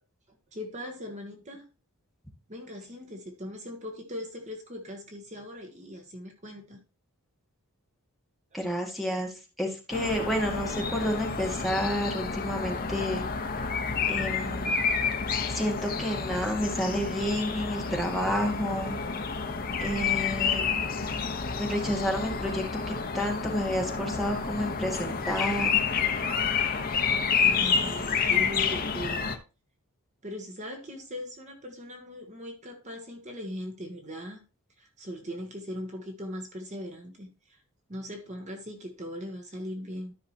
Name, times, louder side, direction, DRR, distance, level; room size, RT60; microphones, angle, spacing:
voice 1, 0.5-1.6 2.5-6.8 8.5-8.6 27.4-29.3 30.2-34.4 34.8-37.6 37.9-40.1, left 1 dB, 30° right, 1.4 m, -39 dB
voice 2, 8.5-13.2 14.1-14.7 15.5-19.0 19.8-20.8 21.6-25.8, equal, ahead, 1.9 m, -30 dB
sound 1, 9.9-29.4, left 5 dB, 40° left, 1.0 m, -29 dB
13.0 x 5.8 x 2.9 m
head